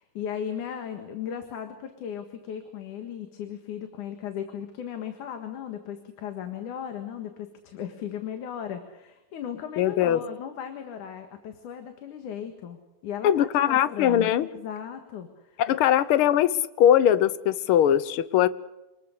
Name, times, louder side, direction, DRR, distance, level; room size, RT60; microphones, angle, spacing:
voice 1, 0.0-15.6, left 8 dB, 90° left, 6 dB, 3.3 m, -36 dB
voice 2, 9.8-10.2 13.2-14.5 15.6-16.5 16.8-18.5, left 10 dB, 65° left, 15 dB, 1.4 m, -21 dB
27.0 x 20.5 x 6.7 m, 1.0 s
omnidirectional pair, 3.5 m